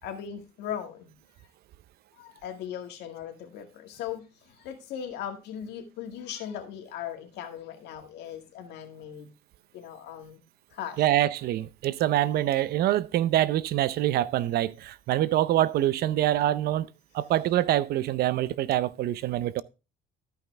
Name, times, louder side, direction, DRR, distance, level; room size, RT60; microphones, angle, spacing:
voice 1, 0.0-1.1 2.2-9.3 9.7-10.4 10.7-11.0, left 9 dB, 85° left, 1.9 m, -38 dB
voice 2, 11.0-16.9 17.1-19.6, right 13 dB, 65° right, 0.6 m, -25 dB
13.0 x 5.6 x 3.3 m
cardioid pair, 110°, 17 cm